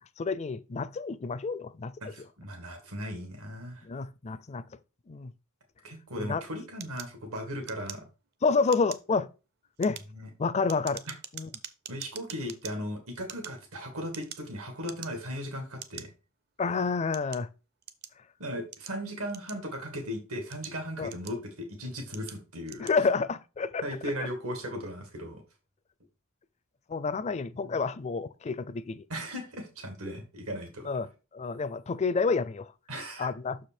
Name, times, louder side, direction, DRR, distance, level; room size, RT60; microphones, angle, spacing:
voice 1, 0.2-1.9 3.8-4.7 5.1-5.3 6.2-6.4 8.4-9.3 9.8-10.0 10.4-11.0 11.3-11.5 16.6-17.5 21.0-21.1 22.8-23.8 26.9-29.1 30.9-32.7 33.2-33.6, left 4 dB, 30° left, 0.4 m, -29 dB
voice 2, 2.0-3.8 5.8-8.0 10.1-10.3 11.0-11.1 11.9-16.1 18.4-22.9 23.8-25.4 27.6-27.8 29.1-30.9 32.9-33.3, equal, 80° right, 1.7 m, -37 dB
sound 1, 6.8-8.3 8.7-9.1 9.7-12.7 13.2-14.5 14.8-15.4 15.8-16.1 16.7-18.2 18.7-19.9 20.4-21.6 22.1-22.4 22.6-23.0, right 9 dB, 50° right, 0.6 m, -44 dB
6.2 x 4.9 x 4.3 m
head